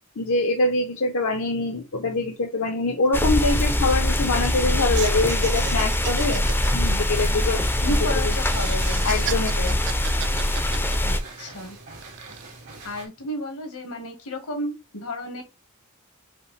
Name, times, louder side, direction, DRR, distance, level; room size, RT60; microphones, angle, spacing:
voice 1, 0.2-8.0 8.2-8.3 9.0-9.8, left 2 dB, 65° left, 3 dB, 0.7 m, -24 dB
sound 1, 2.1-2.2 2.5-2.7 3.0-4.7 4.9-8.0 8.4-11.5 12.0-12.5, right 8 dB, 55° right, 0.5 m, -35 dB
sound 2, 3.1-11.2, left 1 dB, 10° left, 0.5 m, -23 dB
sound 3, 6.2-13.1, right 3 dB, 85° right, 2.0 m, -42 dB
voice 2, 7.3-9.3 11.0-11.8 12.8-15.4, left 1 dB, 85° left, 3 dB, 1.5 m, -33 dB
5.2 x 2.8 x 3.2 m, 0.27 s
head